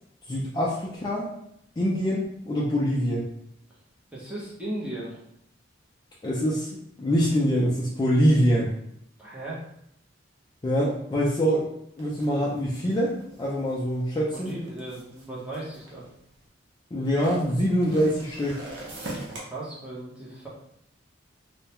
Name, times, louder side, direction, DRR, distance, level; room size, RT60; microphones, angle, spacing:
voice 1, 0.3-1.3 1.8-3.2 6.2-6.7 7.0-8.7 10.6-11.7 12.0-14.5 16.9-18.6, equal, 20° left, -5 dB, 0.3 m, -24 dB
voice 2, 4.1-5.2 9.2-9.6 14.3-16.1 19.3-20.5, right 1 dB, 5° right, -7 dB, 0.7 m, -36 dB
sound 1, 12.0-16.4 17.0-19.4, right 1 dB, 65° right, 0.7 m, -42 dB
2.2 x 2.1 x 2.8 m, 0.74 s
head